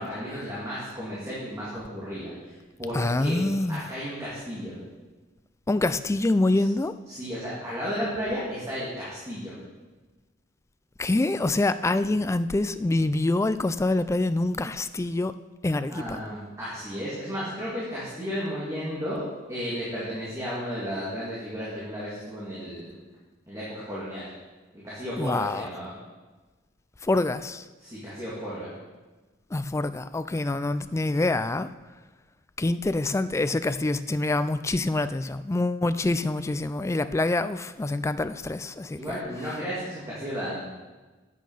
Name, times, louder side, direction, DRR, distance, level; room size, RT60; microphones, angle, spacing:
voice 1, 0.0-3.4 3.7-4.8 6.5-6.7 7.1-9.5 15.9-22.9 23.5-24.3 24.7-25.9 27.8-28.7 39.0-40.6, equal, 15° right, -8 dB, 2.6 m, -34 dB
voice 2, 2.9-3.8 5.7-6.9 11.0-15.3 15.6-16.2 25.2-25.7 27.0-27.7 29.5-31.7 32.6-39.0, left 2 dB, 15° left, 12 dB, 0.3 m, -26 dB
9.2 x 8.6 x 5.6 m, 1.2 s
head